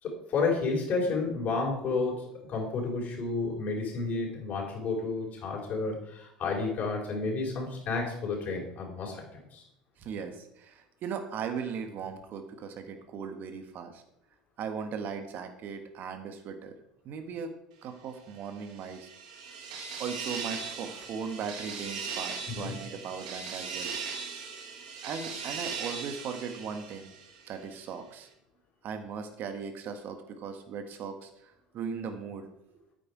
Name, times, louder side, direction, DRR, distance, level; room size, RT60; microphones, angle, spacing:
voice 1, 0.0-2.2 2.5-9.6 22.5-22.8, left 4 dB, 45° left, -2 dB, 4.6 m, -31 dB
voice 2, 10.0-14.0 14.6-16.7 17.1-17.5 17.8-19.1 20.0-23.9 25.0-27.1 27.5-28.3 28.8-32.8, right 6 dB, 50° right, 7 dB, 1.7 m, -38 dB
sound 1, 18.5-27.6, right 5 dB, 70° right, 1.7 m, -39 dB
9.2 x 8.5 x 4.9 m, 0.77 s
figure-of-eight pair, 70°, 4 cm